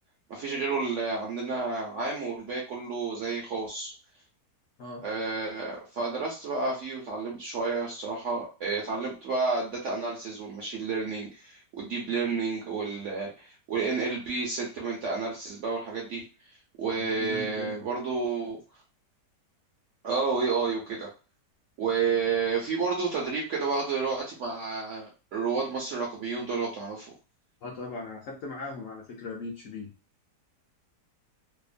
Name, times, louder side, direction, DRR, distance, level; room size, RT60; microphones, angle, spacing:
voice 1, 0.3-3.9 5.0-16.2 16.8-18.6 20.0-21.1 21.8-27.1, right 4 dB, 65° right, -2 dB, 0.8 m, -30 dB
voice 2, 16.9-17.8 27.6-29.9, left 3 dB, 65° left, -1 dB, 0.8 m, -38 dB
2.9 x 2.0 x 2.4 m, 0.33 s
omnidirectional pair, 1.8 m